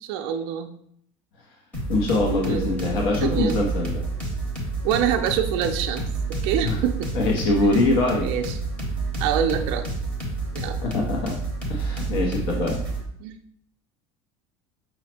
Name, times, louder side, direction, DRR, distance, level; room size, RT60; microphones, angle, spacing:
voice 1, 0.0-0.7 2.4-2.7 3.2-3.6 4.8-6.0 6.4-7.1 8.1-8.4 9.2-9.9 10.5-10.8 13.2-13.4, right 9 dB, 50° right, 5 dB, 0.4 m, -25 dB
sound 1, 1.7-13.0, right 3 dB, 10° left, 0.8 m, -29 dB
voice 2, 1.9-4.1 6.6-6.8 7.1-8.3 10.8-11.4 11.7-12.8, left 2 dB, 70° left, -1 dB, 0.8 m, -23 dB
5.5 x 2.1 x 4.3 m, 0.66 s
cardioid pair, 175°, 13 cm